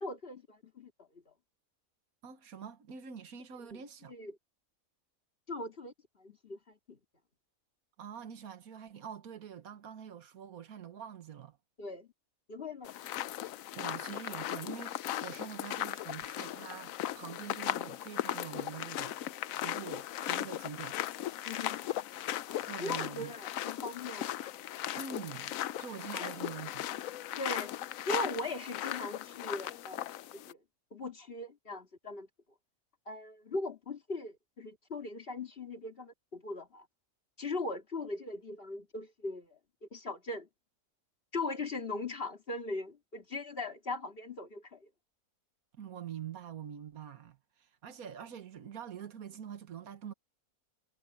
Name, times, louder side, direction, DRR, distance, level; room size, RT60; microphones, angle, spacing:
voice 1, 0.0-0.9 4.1-4.3 5.5-5.9 6.2-7.0 11.8-12.1 12.5-12.9 21.4-21.8 22.8-24.3 26.2-26.3 27.4-27.7 28.1-30.6 30.9-32.3 33.1-36.9 37.4-39.6 39.9-40.5 41.3-44.9, left 2 dB, 40° left, 2.5 m, -39 dB
voice 2, 2.2-4.1 8.0-11.6 13.7-19.2 19.6-21.1 22.6-23.3 25.0-25.5 25.8-26.9 45.8-50.1, right 8 dB, 80° right, 1.7 m, -45 dB
sound 1, 12.8-30.5, left 13 dB, 75° left, 1.0 m, -37 dB
omnidirectional pair, 1.5 m